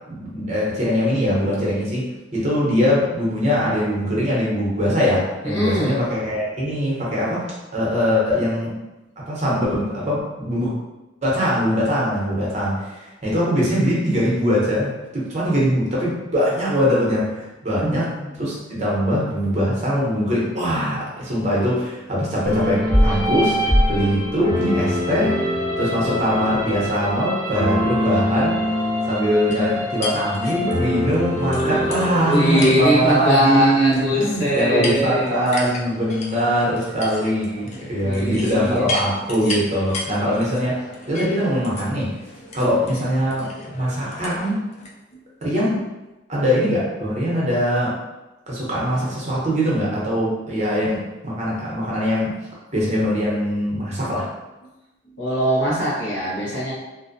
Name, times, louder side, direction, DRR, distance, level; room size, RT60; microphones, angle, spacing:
voice 1, 0.1-8.7 9.3-10.7 11.2-28.6 29.1-40.8 41.1-42.1 42.5-44.6 45.4-45.8 46.3-47.9 48.5-52.3 52.7-54.3, equal, 35° right, -6 dB, 0.7 m, -22 dB
voice 2, 5.4-6.0 17.8-18.4 31.6-31.9 32.2-35.5 38.0-38.9 45.1-45.2 55.1-56.7, equal, 75° left, -6 dB, 0.9 m, -22 dB
sound 1, 22.4-33.0, equal, 10° left, 0.8 m, -23 dB
sound 2, 29.5-44.9, left 2 dB, 35° left, 0.3 m, -35 dB
2.5 x 2.1 x 2.5 m, 1.0 s
head